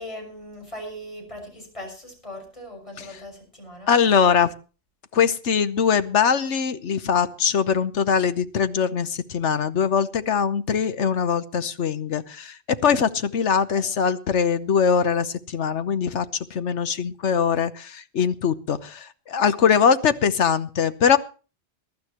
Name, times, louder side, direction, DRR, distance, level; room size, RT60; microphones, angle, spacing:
voice 1, 0.0-4.0 13.7-14.0, equal, 30° left, 2 dB, 6.3 m, -39 dB
voice 2, 3.9-4.5 5.1-12.6 12.8-16.3 16.5-21.2, left 7 dB, 90° left, 12 dB, 1.3 m, -22 dB
22.0 x 12.0 x 3.0 m, 0.35 s
omnidirectional pair, 1.2 m